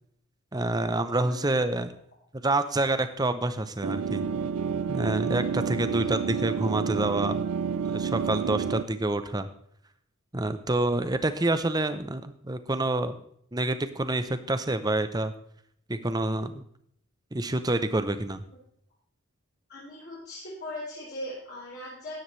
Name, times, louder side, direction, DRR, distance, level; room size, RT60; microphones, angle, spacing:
voice 1, 0.5-1.9 2.4-4.2 4.9-7.4 7.8-9.5 10.3-13.2 13.5-15.3 15.9-16.6 17.3-18.4, right 2 dB, 15° right, 11 dB, 0.7 m, -27 dB
voice 2, 1.2-1.6 5.9-6.2 19.7-22.2, left 1 dB, 45° left, -8 dB, 3.9 m, -40 dB
sound 1, 3.8-8.8, right 6 dB, 80° right, 0.5 m, -29 dB
13.5 x 10.0 x 3.2 m, 0.68 s
head